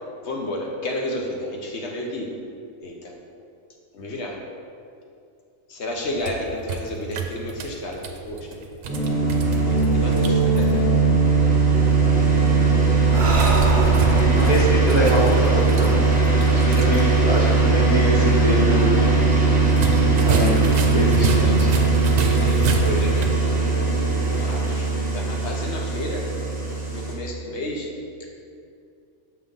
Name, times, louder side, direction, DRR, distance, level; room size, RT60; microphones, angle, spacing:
voice 1, 0.2-2.3 2.8-3.1 3.9-4.4 5.7-8.7 9.6-10.8 16.6-16.8 21.4-21.6 22.2-26.2 26.9-27.9 28.2-28.3, left 1 dB, 60° left, -1 dB, 1.0 m, -32 dB
sound 1, 6.0-10.7 13.3-17.1 17.4-17.5 19.7-23.4, right 5 dB, 75° right, 1.0 m, -30 dB
sound 2, 8.9-27.1, right 4 dB, 5° right, 1.1 m, -19 dB
Breathing, 13.0-16.6, right 2 dB, 45° right, 0.4 m, -28 dB
voice 2, 14.2-16.0 16.4-18.9 20.2-21.7, equal, 25° left, -5 dB, 1.0 m, -24 dB
6.5 x 3.6 x 5.3 m, 2.4 s
omnidirectional pair, 1.4 m